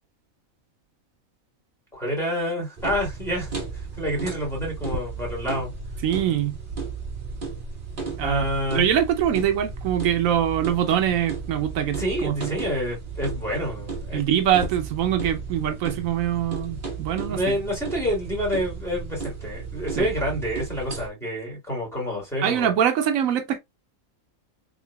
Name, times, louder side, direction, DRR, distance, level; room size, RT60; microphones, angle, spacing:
voice 1, 1.9-3.6 4.0-5.7 8.2-8.8 12.0-14.2 17.3-22.7, equal, ahead, 2.5 m, -28 dB
sound 1, 2.8-21.1, right 4 dB, 40° right, 1.4 m, -34 dB
voice 2, 6.0-6.6 8.2-8.4 8.7-12.5 14.1-17.6 20.0-20.1 22.4-23.6, right 10 dB, 80° right, 1.0 m, -23 dB
3.7 x 3.6 x 2.2 m
omnidirectional pair, 1.4 m